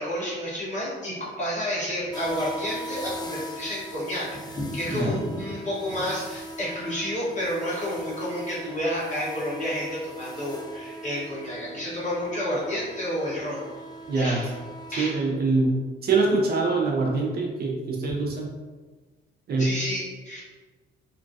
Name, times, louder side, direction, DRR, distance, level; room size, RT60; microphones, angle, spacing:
voice 1, 0.0-13.6 14.1-14.5 14.9-15.2 19.6-20.4, equal, 35° left, -7 dB, 1.4 m, -30 dB
sound 1, 2.1-15.1, right 1 dB, 20° left, 0.4 m, -40 dB
voice 2, 14.1-14.4 15.0-18.5 19.5-19.7, right 3 dB, 50° right, -1 dB, 0.6 m, -24 dB
3.1 x 2.2 x 2.6 m, 1.3 s
cardioid pair, 90°, 20 cm